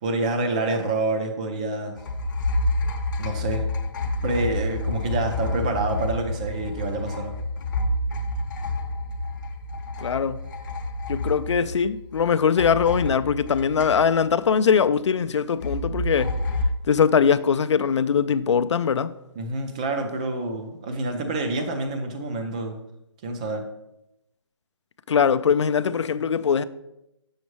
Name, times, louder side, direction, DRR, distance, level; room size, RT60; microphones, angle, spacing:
voice 1, 0.0-2.0 3.2-3.7 4.2-7.4 19.4-22.8 23.2-23.7, right 2 dB, 15° right, 0.4 m, -27 dB
sound 1, 2.0-12.3 12.6-14.4 15.6-16.6, left 2 dB, 40° left, 0.7 m, -29 dB
voice 2, 10.0-10.4 11.1-16.3 16.9-19.1 25.1-26.6, left 6 dB, 70° left, 0.4 m, -21 dB
6.9 x 6.4 x 3.1 m
hypercardioid pair, 165°, 16 cm